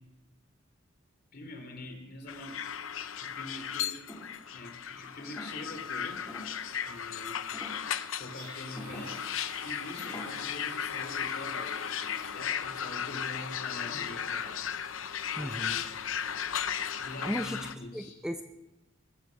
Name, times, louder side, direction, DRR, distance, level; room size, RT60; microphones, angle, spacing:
voice 1, 1.3-2.6 3.0-4.0 4.5-6.2 6.8-7.4 8.1-9.2 9.6-14.6 15.4-15.9 17.0-18.1, left 2 dB, 50° left, 4 dB, 3.4 m, -44 dB
sound 1, 2.3-17.7, left 8 dB, 75° left, 0.8 m, -36 dB
sound 2, 4.1-4.4 5.2-5.8 6.3-6.6 7.5-7.9 8.7-9.2 10.0-10.3, left 1 dB, 15° left, 2.8 m, -45 dB
Domestic sounds home sounds, 8.3-12.7, right 3 dB, 65° right, 6.2 m, -51 dB
voice 2, 15.4-15.8 17.2-17.6 17.9-18.4, equal, 5° right, 6 dB, 0.6 m, -35 dB
22.0 x 8.0 x 6.5 m, 1.1 s
head